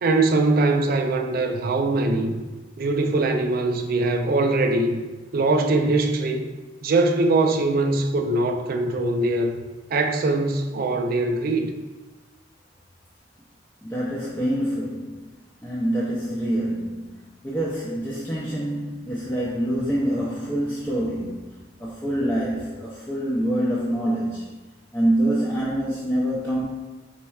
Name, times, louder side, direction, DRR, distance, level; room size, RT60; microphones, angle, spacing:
voice 1, 0.0-2.4 2.8-5.0 5.3-6.5 6.8-9.6 9.9-11.7, right 2 dB, 50° right, 5 dB, 0.4 m, -22 dB
voice 2, 13.8-15.3 15.6-24.6 24.9-26.6, right 1 dB, 10° left, -7 dB, 0.5 m, -26 dB
4.3 x 4.2 x 2.3 m, 1.2 s
head